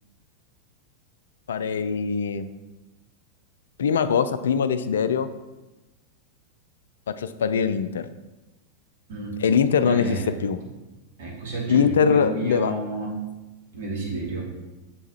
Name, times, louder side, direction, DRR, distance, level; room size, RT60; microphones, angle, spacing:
voice 1, 1.5-2.5 3.8-5.3 7.1-8.1 9.4-10.6 11.7-12.7, left 6 dB, 65° left, 12 dB, 0.3 m, -22 dB
voice 2, 9.8-10.3 11.2-13.2 13.7-14.5, right 2 dB, 55° right, -4 dB, 2.2 m, -31 dB
6.9 x 4.5 x 4.3 m, 1.1 s
figure-of-eight pair, 90°, 0 cm